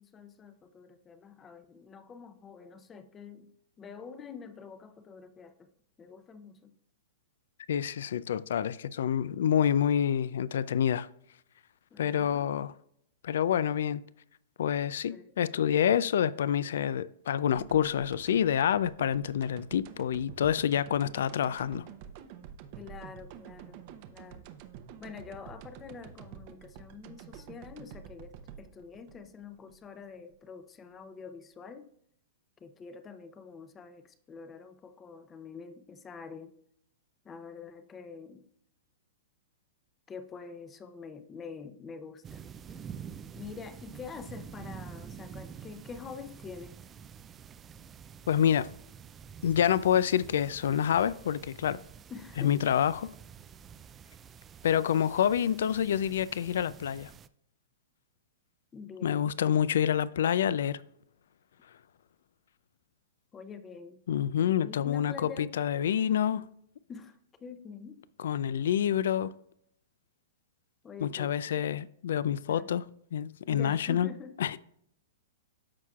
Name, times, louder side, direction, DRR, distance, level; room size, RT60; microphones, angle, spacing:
voice 1, 0.0-3.5 3.8-5.7 6.0-6.7 11.9-12.5 15.0-15.3 22.7-23.8 24.1-24.5 25.0-31.9 32.6-36.6 37.2-38.4 40.1-42.4 43.3-46.8 52.1-52.6 58.7-59.4 63.3-64.0 64.4-65.6 66.9-68.1 70.8-71.6 72.5-72.8 73.4-74.4, left 5 dB, 20° left, 0.6 m, -46 dB
voice 2, 7.7-11.1 12.0-12.7 13.2-14.0 14.6-21.8 48.3-48.7 49.4-51.8 52.4-53.1 54.6-57.1 59.0-60.8 64.1-66.4 68.2-69.3 71.0-72.8 73.1-74.1 74.4-74.6, left 9 dB, 75° left, 0.3 m, -27 dB
sound 1, 17.5-30.4, right 8 dB, 50° right, 0.7 m, -49 dB
sound 2, 42.2-57.3, right 7 dB, 20° right, 0.3 m, -48 dB
13.5 x 4.6 x 2.4 m
hypercardioid pair, 135°, 0 cm